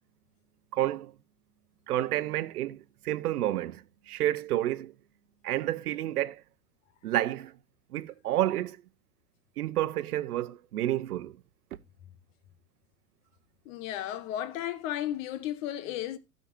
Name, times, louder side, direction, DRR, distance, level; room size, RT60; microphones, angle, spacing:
voice 1, 0.7-1.1 1.9-4.9 5.4-6.4 7.0-7.6 7.9-8.8 9.6-11.4, right 13 dB, 75° right, 0.9 m, -30 dB
voice 2, 13.6-16.2, left 12 dB, 55° left, 1.4 m, -34 dB
15.5 x 6.5 x 2.7 m
hypercardioid pair, 105°, 46 cm